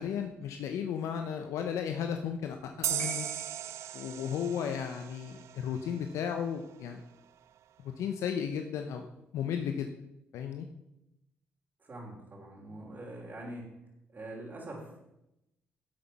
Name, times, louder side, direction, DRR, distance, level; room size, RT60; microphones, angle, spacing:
voice 1, 0.0-3.3 3.9-7.0 8.0-9.1 9.3-9.9 10.3-10.7, left 8 dB, 80° left, 5 dB, 0.8 m, -34 dB
sound 1, 2.8-6.2, right 11 dB, 70° right, 0.4 m, -37 dB
sound 2, 3.0-7.2 8.3-8.4, left 3 dB, 60° left, 4.3 m, -52 dB
voice 2, 11.8-13.7 14.1-15.0, right 1 dB, 40° right, -6 dB, 3.5 m, -44 dB
11.5 x 7.4 x 5.8 m, 0.89 s
supercardioid pair, 65°, 5 cm